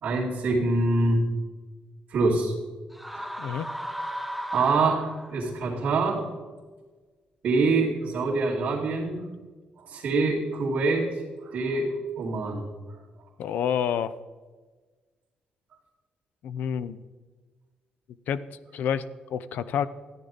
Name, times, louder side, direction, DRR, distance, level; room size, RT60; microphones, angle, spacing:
voice 1, 0.0-1.2 2.1-2.5 3.1-3.2 4.5-6.2 7.4-9.3 9.8-11.1 11.4-12.7, right 3 dB, 55° right, -8 dB, 2.5 m, -25 dB
sound 1, 2.9-5.6, equal, ahead, 0.5 m, -35 dB
voice 2, 13.4-14.1 16.4-17.0 18.3-18.4 18.7-19.9, left 8 dB, 80° left, 15 dB, 0.5 m, -28 dB
14.0 x 10.0 x 4.0 m, 1.3 s
cardioid pair, 160°, 3 cm